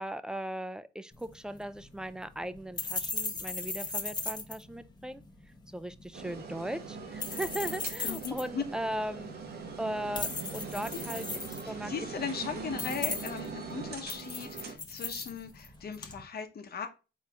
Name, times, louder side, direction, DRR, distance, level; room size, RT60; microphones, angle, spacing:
voice 1, 0.0-5.2 5.7-9.3 9.8-11.9, right 1 dB, 5° right, 0.3 m, -38 dB
sound 1, 1.1-16.2, left 4 dB, 20° left, 0.8 m, -39 dB
sound 2, 6.1-14.7, right 5 dB, 55° right, 1.0 m, -42 dB
voice 2, 8.0-8.6 10.9-11.0 11.6-16.9, left 6 dB, 50° left, 0.9 m, -38 dB
4.2 x 4.2 x 2.3 m
cardioid pair, 90°, 20 cm